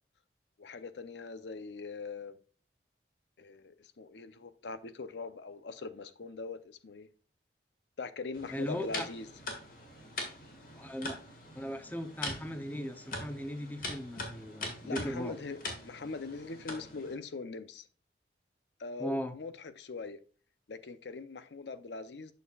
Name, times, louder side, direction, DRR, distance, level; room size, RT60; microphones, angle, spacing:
voice 1, 0.6-2.4 3.4-7.1 8.0-9.4 14.8-17.9 18.8-20.2 20.7-22.3, left 3 dB, 80° left, 0.6 m, -42 dB
sound 1, 8.3-17.1, left 2 dB, 50° left, 2.0 m, -43 dB
voice 2, 8.5-9.1 10.8-11.2 11.5-15.4 19.0-19.4, equal, 10° left, 0.6 m, -38 dB
8.2 x 6.4 x 2.3 m
head